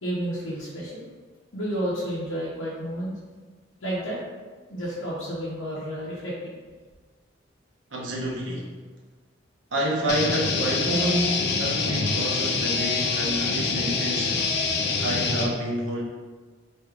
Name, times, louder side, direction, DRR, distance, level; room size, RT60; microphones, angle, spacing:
voice 1, 0.0-1.1 1.5-3.2 3.8-4.2 4.7-6.5, equal, 80° left, -9 dB, 0.8 m, -31 dB
voice 2, 7.9-8.7 9.7-14.5 15.0-16.0, right 1 dB, 75° right, -2 dB, 0.7 m, -28 dB
sound 1, 10.1-15.5, left 4 dB, 55° left, 0.4 m, -25 dB
4.5 x 2.6 x 2.4 m, 1.4 s
head